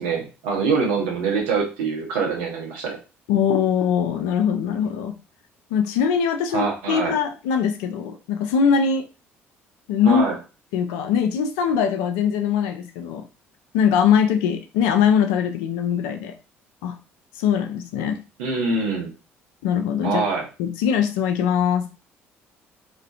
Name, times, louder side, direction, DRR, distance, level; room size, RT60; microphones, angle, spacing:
voice 1, 0.0-3.0 6.5-7.1 10.1-10.4 18.4-19.1 20.0-20.5, right 4 dB, 75° right, 0 dB, 0.7 m, -24 dB
voice 2, 3.3-5.1 5.7-9.1 9.9-10.3 10.7-13.3 13.7-16.3 16.8-17.0 17.4-18.2 19.6-20.2 20.6-21.9, left 7 dB, 70° left, 6 dB, 0.4 m, -21 dB
2.3 x 2.1 x 2.5 m, 0.33 s
hypercardioid pair, 55°, 6 cm